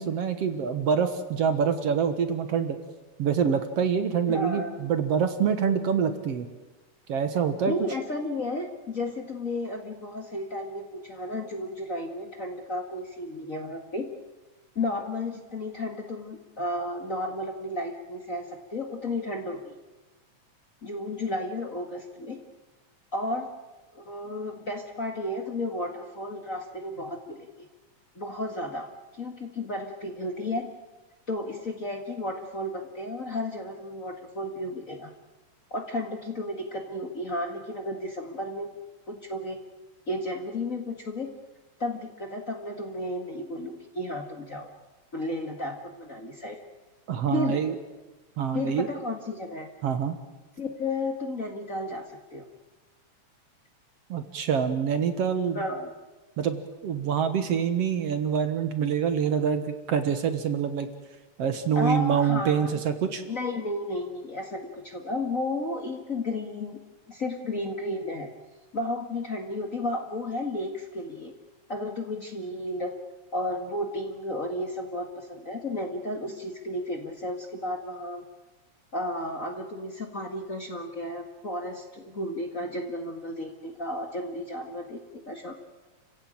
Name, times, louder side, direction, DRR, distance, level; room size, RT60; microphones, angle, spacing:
voice 1, 0.0-2.8 3.2-6.5 7.1-7.7 47.1-47.8 48.4-48.9 49.8-50.2 54.1-55.6 56.4-60.9 61.4-63.2, right 7 dB, 60° right, 8 dB, 2.2 m, -26 dB
voice 2, 4.3-4.8 7.7-14.1 14.8-19.7 20.8-22.4 23.1-23.5 23.9-27.7 28.2-28.9 29.1-30.7 31.3-35.1 35.7-38.7 39.1-39.6 40.1-41.3 41.8-44.7 45.1-46.6 47.3-47.6 48.5-49.7 50.6-52.4 55.5-55.9 61.8-62.8 63.3-66.8 67.1-68.3 68.7-71.3 71.7-72.9 73.3-78.2 78.9-85.5, left 1 dB, 30° left, 3 dB, 1.8 m, -33 dB
30.0 x 16.0 x 8.9 m, 1.2 s
omnidirectional pair, 3.4 m